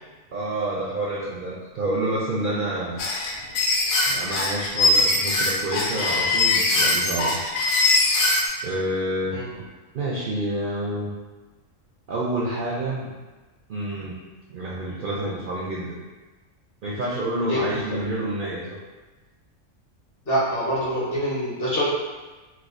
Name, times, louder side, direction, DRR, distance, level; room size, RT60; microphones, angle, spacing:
voice 1, 0.3-3.0 4.1-7.4 8.6-9.7 9.9-11.1 12.1-13.1 13.7-14.2 14.5-16.0 16.8-18.8, right 1 dB, 60° right, -5 dB, 0.5 m, -28 dB
sound 1, 3.0-8.5, left 2 dB, 70° left, 0.9 m, -21 dB
voice 2, 20.3-21.9, equal, 50° left, -7 dB, 1.1 m, -25 dB
4.5 x 2.2 x 2.4 m, 1.2 s
omnidirectional pair, 1.3 m